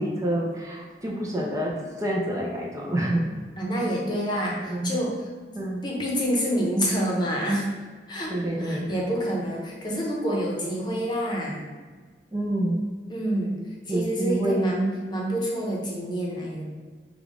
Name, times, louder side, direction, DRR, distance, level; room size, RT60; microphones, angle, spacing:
voice 1, 0.0-1.7 2.0-3.2 4.7-5.0 5.5-5.8 8.3-8.9 12.3-12.9 13.9-14.8, right 1 dB, 20° right, -2 dB, 0.5 m, -27 dB
voice 2, 3.6-5.3 5.8-7.7 8.1-11.6 13.1-13.6 13.9-16.6, equal, 25° left, -2 dB, 0.8 m, -27 dB
4.9 x 2.3 x 3.6 m, 1.5 s
head